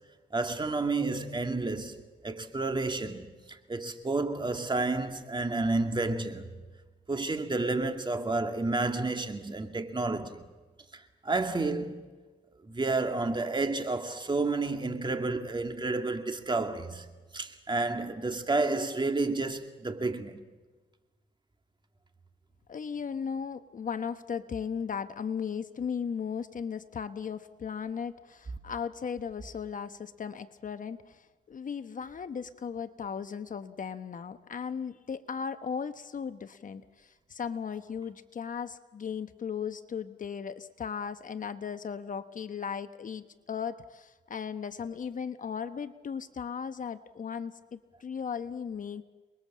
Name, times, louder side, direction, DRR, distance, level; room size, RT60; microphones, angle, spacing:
voice 1, 0.3-6.5 7.1-10.4 10.9-12.1 12.6-17.1 17.3-20.4, right 3 dB, 25° right, 2.4 m, -30 dB
voice 2, 22.7-49.0, left 7 dB, 40° left, 1.0 m, -37 dB
29.5 x 21.0 x 7.4 m
cardioid pair, 90°, 20 cm